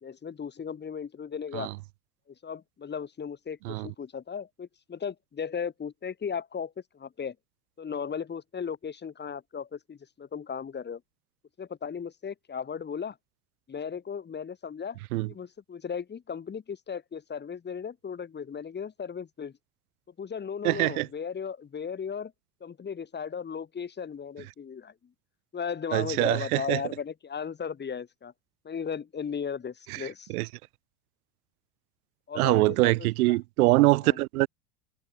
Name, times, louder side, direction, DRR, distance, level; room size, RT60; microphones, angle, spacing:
voice 1, 0.0-1.7 2.4-7.4 7.8-11.0 11.6-13.2 13.7-15.0 15.3-19.5 20.2-22.3 22.6-25.1 25.5-28.3 28.6-30.3 32.3-32.9 33.2-33.4 34.0-34.2, left 6 dB, 25° left, 2.5 m, -36 dB
voice 2, 20.6-21.1 25.9-26.8 29.9-30.5 32.4-34.5, right 20 dB, 80° right, 2.1 m, -24 dB
supercardioid pair, 110°, 43 cm